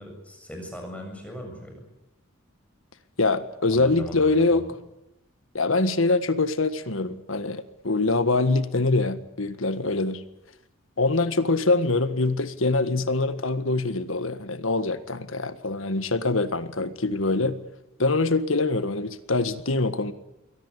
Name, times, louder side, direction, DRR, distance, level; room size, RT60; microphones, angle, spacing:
voice 1, 0.0-1.9 3.7-4.7, equal, 5° left, 3 dB, 7.7 m, -39 dB
voice 2, 3.2-4.6 5.5-10.2 11.0-17.6 18.0-20.1, left 3 dB, 75° left, 12 dB, 1.7 m, -24 dB
23.0 x 18.0 x 9.9 m, 0.88 s
head